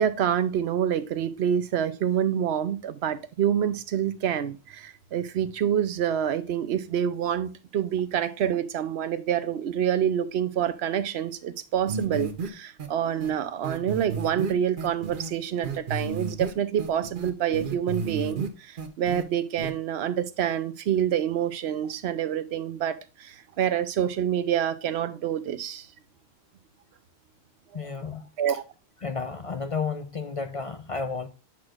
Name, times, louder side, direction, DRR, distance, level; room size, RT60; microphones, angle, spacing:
voice 1, 0.0-25.9 28.4-28.6, right 9 dB, 85° right, 0.9 m, -27 dB
sound 1, 11.9-12.5 12.8-12.9 13.2-13.3 13.6-15.3 15.6-16.5 16.8-18.5 18.8-19.2 19.6-19.7, right 4 dB, 55° right, 1.0 m, -32 dB
voice 2, 27.7-28.6 29.0-31.3, left 4 dB, 45° left, 0.5 m, -32 dB
8.7 x 6.1 x 2.4 m
omnidirectional pair, 1.1 m